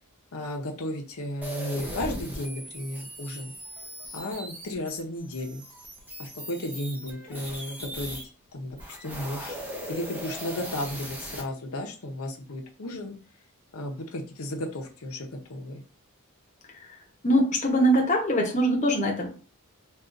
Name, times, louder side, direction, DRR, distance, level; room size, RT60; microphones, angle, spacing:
voice 1, 0.3-3.5 4.1-5.6 6.2-8.2 8.5-9.6 9.9-13.1 13.7-15.8, left 1 dB, 80° left, 2 dB, 0.7 m, -34 dB
sound 1, 1.4-8.2 8.7-11.4, equal, 10° right, 0.6 m, -39 dB
voice 2, 17.2-19.3, equal, 35° left, 0 dB, 0.9 m, -22 dB
3.7 x 2.4 x 2.5 m, 0.36 s
head